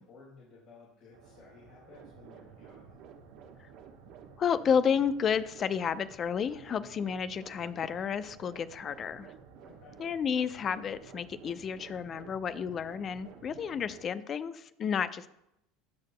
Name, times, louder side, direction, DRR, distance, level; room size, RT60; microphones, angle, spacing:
voice 1, 0.0-3.0 9.6-10.0, left 4 dB, 60° left, -6 dB, 3.8 m, -56 dB
sound 1, 1.1-14.0, right 4 dB, 85° right, 1.8 m, -58 dB
sound 2, 1.9-14.0, right 8 dB, 60° right, 1.0 m, -53 dB
voice 2, 4.4-9.3 10.0-15.3, left 7 dB, 40° left, 14 dB, 0.6 m, -31 dB
19.0 x 6.6 x 2.2 m, 0.81 s
hypercardioid pair, 80°, 0 cm